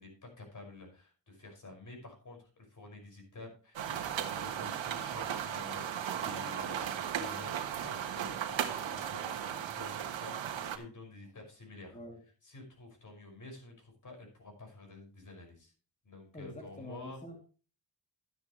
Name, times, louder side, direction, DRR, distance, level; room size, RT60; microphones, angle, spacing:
voice 1, 0.0-12.0 12.4-15.7 16.0-17.2, left 2 dB, 45° left, 3 dB, 6.0 m, -50 dB
sound 1, 3.8-10.8, right 9 dB, 90° right, 1.5 m, -36 dB
voice 2, 16.3-17.4, left 1 dB, 15° left, 2 dB, 2.7 m, -45 dB
13.0 x 10.0 x 3.1 m, 0.36 s
cardioid pair, 100°, 44 cm